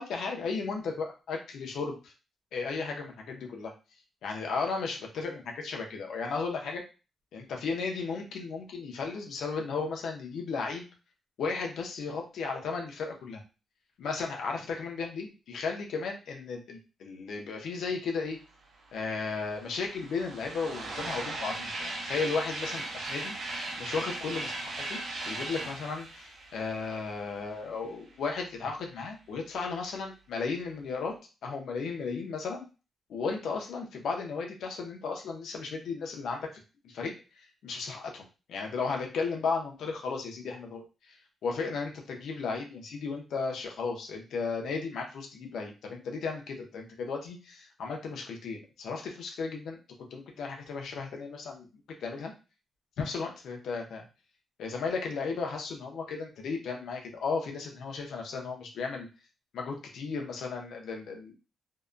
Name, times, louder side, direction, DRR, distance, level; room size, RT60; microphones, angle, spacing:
voice 1, 0.0-2.1 2.5-3.7 4.2-6.8 7.3-10.9 11.4-13.4 14.0-18.4 18.9-23.3 23.8-25.0 25.2-31.1 31.4-32.7 33.1-36.5 36.8-38.2 38.5-49.8 50.1-51.7 52.0-52.3 53.0-54.0 54.6-59.1 59.5-61.3, left 4 dB, 80° left, 1 dB, 0.6 m, -35 dB
sound 1, 18.8-18.9 19.1-27.7, right 2 dB, 70° right, 0.7 m, -38 dB
2.7 x 2.2 x 2.4 m, 0.32 s
wide cardioid pair, 150°, 0 cm